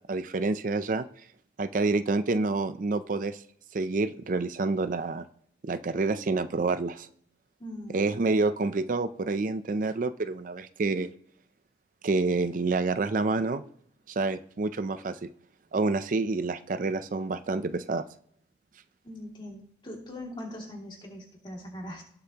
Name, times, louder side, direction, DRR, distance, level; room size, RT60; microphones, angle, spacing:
voice 1, 0.1-1.0 1.6-3.4 3.7-5.3 5.6-7.1 7.9-11.1 12.0-13.6 14.1-15.3 15.7-18.0, right 3 dB, 50° right, 11 dB, 0.5 m, -28 dB
voice 2, 7.6-8.1 19.0-22.0, left 1 dB, 25° left, 0 dB, 2.3 m, -41 dB
18.5 x 6.8 x 2.9 m, 0.66 s
head